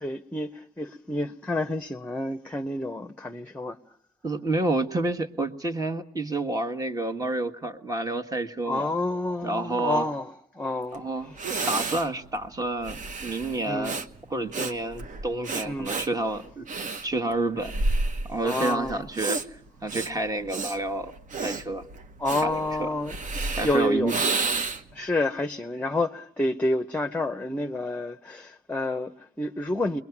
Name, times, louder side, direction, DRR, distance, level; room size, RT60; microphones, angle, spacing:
voice 1, 0.0-3.8 8.7-11.0 13.6-13.9 15.6-15.9 18.4-19.1 22.2-23.2 23.6-24.1 24.9-30.0, left 1 dB, 10° left, 0.9 m, -29 dB
voice 2, 4.2-8.9 9.4-10.0 10.9-11.3 11.7-14.0 14.3-16.7 17.0-17.8 18.2-21.1 21.4-21.9 22.4-22.9 23.5-24.4, right 2 dB, 25° right, 1.6 m, -29 dB
Breathing, 10.9-11.0 11.4-25.0, right 3 dB, 55° right, 1.1 m, -31 dB
28.0 x 22.0 x 6.0 m
cardioid pair, 100°, 15 cm